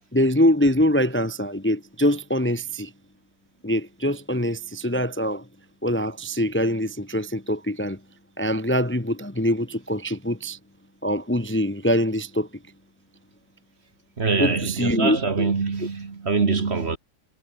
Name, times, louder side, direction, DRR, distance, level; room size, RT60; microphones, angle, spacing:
voice 1, 0.1-2.9 3.6-5.5 5.8-8.0 8.4-10.6 11.0-12.5 14.4-15.5, equal, 10° left, 1.0 m, -23 dB
voice 2, 14.2-17.0, right 4 dB, 40° right, 1.8 m, -24 dB
omnidirectional pair, 1.8 m